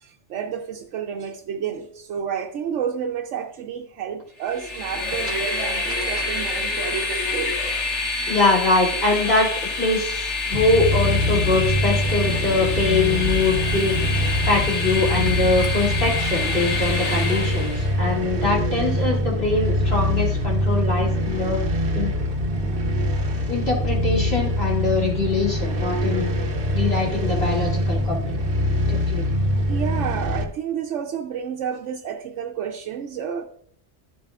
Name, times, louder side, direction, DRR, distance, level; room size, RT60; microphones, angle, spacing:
voice 1, 0.0-7.6 28.6-28.9 29.7-33.5, right 8 dB, 80° right, 1.0 m, -30 dB
Train, 4.4-17.9, left 3 dB, 75° left, 2.0 m, -27 dB
voice 2, 8.3-9.5 9.8-13.9 14.5-21.6 21.9-22.1 23.5-26.3 26.7-28.4 28.9-29.2, left 3 dB, 60° left, 3.0 m, -23 dB
sound 1, 10.5-30.4, equal, 55° right, 1.0 m, -24 dB
13.0 x 7.3 x 2.4 m
omnidirectional pair, 1.2 m